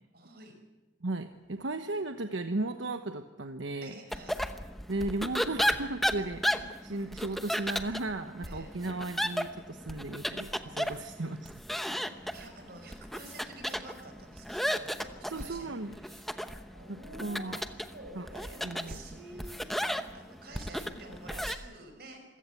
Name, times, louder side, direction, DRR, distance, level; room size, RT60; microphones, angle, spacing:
voice 1, 0.1-0.6 3.8-4.4 8.5-8.7 12.2-16.3 16.7-22.4, right 2 dB, 55° right, 5 dB, 5.6 m, -49 dB
voice 2, 1.0-3.9 4.9-11.5 15.3-15.9 17.2-17.6 18.1-18.3 18.6-19.0, right 2 dB, 80° right, 7 dB, 1.1 m, -35 dB
sound 1, 4.1-21.5, equal, ahead, 0.9 m, -35 dB
26.5 x 16.5 x 8.3 m, 1.1 s
head